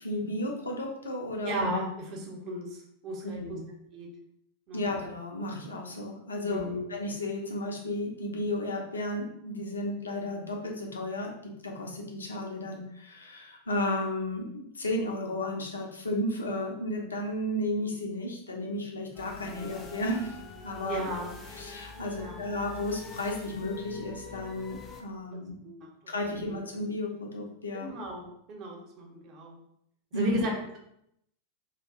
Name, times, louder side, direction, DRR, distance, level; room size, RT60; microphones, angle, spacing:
voice 1, 0.0-1.7 3.2-3.7 4.7-11.3 11.6-20.4 20.6-21.1 21.5-25.6 26.1-27.9 30.1-30.4, left 1 dB, 75° left, 1 dB, 0.6 m, -33 dB
voice 2, 1.5-3.6 3.9-4.1 4.7-4.9 6.5-6.8 20.9-21.3 22.2-22.4 25.6-25.8 27.7-29.6 30.1-30.5, equal, 35° right, 0 dB, 0.7 m, -34 dB
sound 1, 19.1-25.0, left 4 dB, 25° left, 0.4 m, -45 dB
2.5 x 2.1 x 3.5 m, 0.75 s
figure-of-eight pair, 90°, 0 cm